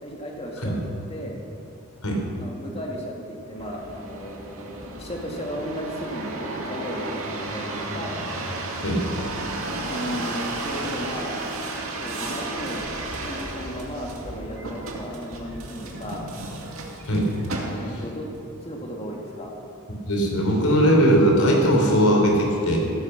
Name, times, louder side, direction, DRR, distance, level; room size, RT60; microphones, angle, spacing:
voice 1, 0.0-0.8 1.1-1.4 2.4-8.3 9.8-11.4 12.0-12.8 13.3-16.3 17.6-18.3 18.6-19.5, equal, 30° left, 0 dB, 2.2 m, -35 dB
sound 1, 3.6-18.1 18.7-19.3, right 2 dB, 70° right, 2.3 m, -33 dB
voice 2, 20.1-22.8, equal, 85° left, 0 dB, 3.6 m, -19 dB
15.0 x 13.5 x 5.9 m, 2.7 s
head